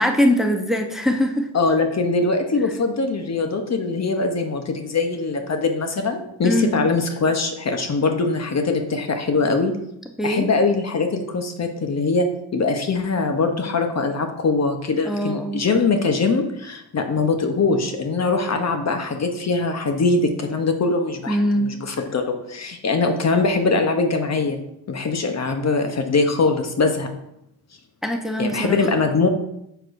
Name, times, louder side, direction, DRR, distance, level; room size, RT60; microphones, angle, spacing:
voice 1, 0.0-1.5 6.4-6.7 10.2-10.5 15.0-15.6 21.3-21.7 28.0-28.8, equal, ahead, 3 dB, 0.8 m, -21 dB
voice 2, 1.5-9.7 10.2-24.6 24.9-27.1 28.4-29.3, left 3 dB, 45° left, 5 dB, 0.9 m, -22 dB
6.8 x 6.0 x 2.6 m, 0.80 s
cardioid pair, 65°, 38 cm